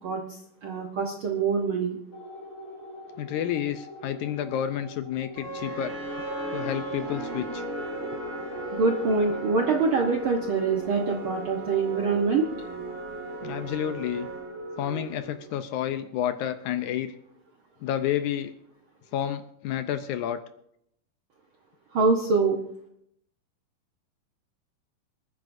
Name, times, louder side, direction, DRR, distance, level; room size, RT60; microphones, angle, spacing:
voice 1, 0.0-2.0 8.7-12.5 21.9-22.6, right 4 dB, 70° right, 2 dB, 1.2 m, -25 dB
sound 1, 2.1-16.9, equal, 20° left, 3.9 m, -45 dB
voice 2, 3.2-5.9 6.5-7.7 13.4-14.3 14.8-17.1 17.8-18.5 19.1-20.4, left 10 dB, 75° left, 10 dB, 1.9 m, -30 dB
sound 2, 5.4-15.6, right 2 dB, 50° right, 4.4 m, -36 dB
27.0 x 9.5 x 2.6 m, 0.73 s
omnidirectional pair, 3.8 m